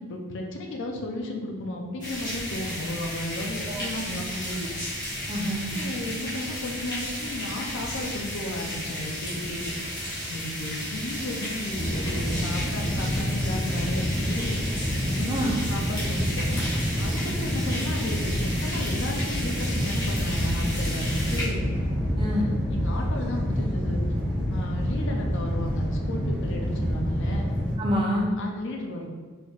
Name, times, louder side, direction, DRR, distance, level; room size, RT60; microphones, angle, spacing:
voice 1, 0.0-4.7 5.7-9.7 10.3-14.6 15.1-15.3 15.7-16.6 17.0-21.7 22.7-24.0 24.5-27.5 28.4-29.1, left 1 dB, 60° left, 1 dB, 0.5 m, -34 dB
sound 1, 2.0-21.5, equal, 20° left, 1.1 m, -34 dB
voice 2, 3.7-4.2 5.3-5.7 15.3-15.6 22.2-22.5 27.8-28.3, equal, 25° right, -2 dB, 0.6 m, -27 dB
sound 2, 11.7-27.8, equal, 10° right, 1.1 m, -28 dB
4.2 x 3.3 x 2.4 m, 1.5 s
head